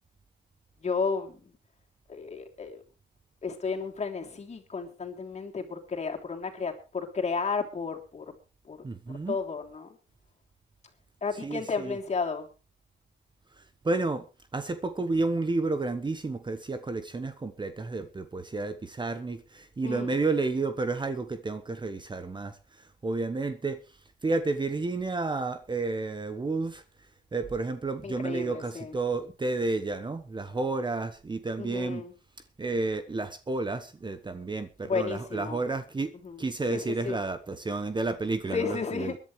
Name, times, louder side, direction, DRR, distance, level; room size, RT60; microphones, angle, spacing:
voice 1, 0.8-1.4 2.1-2.8 3.4-8.2 8.7-8.8 9.3-9.9 11.2-12.5 19.8-20.1 28.0-28.9 31.6-32.1 34.8-35.6 36.2-36.4 36.7-37.2 38.5-39.2, left 5 dB, 35° left, 3.3 m, -33 dB
voice 2, 8.8-9.4 11.4-12.0 13.8-14.3 14.5-23.8 24.2-26.8 27.3-32.0 32.6-36.1 36.4-39.2, right 3 dB, 25° right, 1.1 m, -31 dB
23.0 x 11.0 x 3.3 m
cardioid pair, 90°, 20 cm